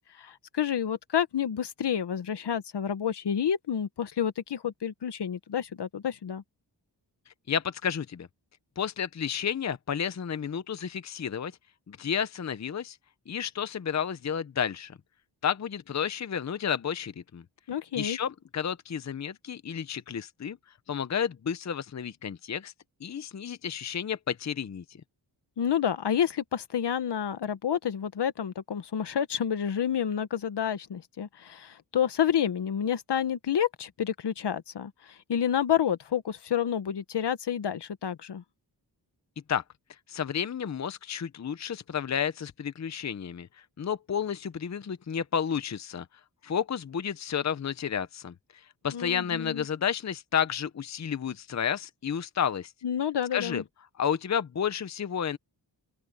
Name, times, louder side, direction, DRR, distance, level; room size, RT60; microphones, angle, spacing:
voice 1, 0.2-6.4 17.7-18.2 25.6-34.9 35.3-38.4 48.9-49.6 52.8-53.6, left 8 dB, 70° left, 1.3 m, -29 dB
voice 2, 7.5-8.3 8.8-11.5 11.9-13.0 13.3-15.0 15.4-17.4 17.9-20.6 20.9-22.7 23.0-24.8 39.5-39.6 40.1-43.5 43.8-46.1 46.4-52.7 53.3-53.6 54.0-55.4, left 8 dB, 40° left, 0.7 m, -31 dB
open air
wide cardioid pair, 105°, 42 cm